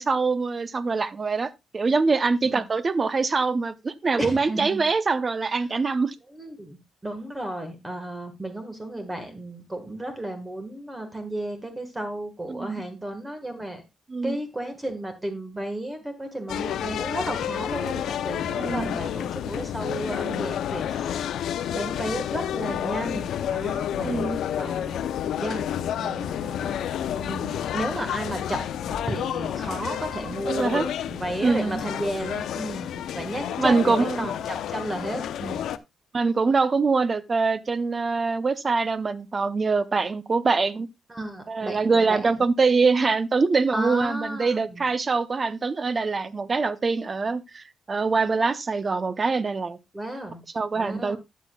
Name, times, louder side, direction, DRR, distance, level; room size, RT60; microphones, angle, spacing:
voice 1, 0.0-6.2 12.5-12.8 14.1-14.4 18.5-19.0 24.0-24.4 30.5-30.9 31.4-31.8 33.6-34.3 36.1-40.9 41.5-49.8 50.5-51.2, right 4 dB, 30° right, 0.7 m, -24 dB
voice 2, 4.2-4.8 6.3-6.8 7.0-13.8 14.2-21.4 21.7-25.0 25.4-25.7 26.0-35.7 41.1-42.2 43.7-44.8 49.9-50.4 50.7-51.2, right 1 dB, 15° right, 1.5 m, -33 dB
sound 1, 16.5-35.8, left 10 dB, 80° left, 0.5 m, -30 dB
12.5 x 8.3 x 2.3 m
cardioid pair, 115°, 0 cm